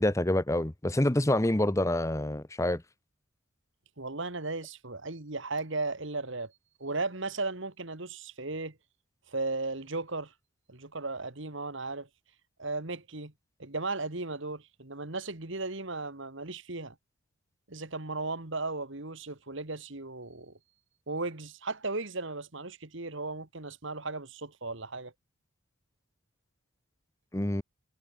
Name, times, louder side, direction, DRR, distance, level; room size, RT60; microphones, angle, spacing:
voice 1, 0.0-2.8 27.3-27.6, left 1 dB, 15° left, 0.8 m, -27 dB
voice 2, 4.0-6.5 6.8-8.8 9.3-10.3 10.7-12.1 12.6-13.3 13.6-17.0 17.7-20.6 21.1-25.1, right 3 dB, 60° right, 2.1 m, -36 dB
head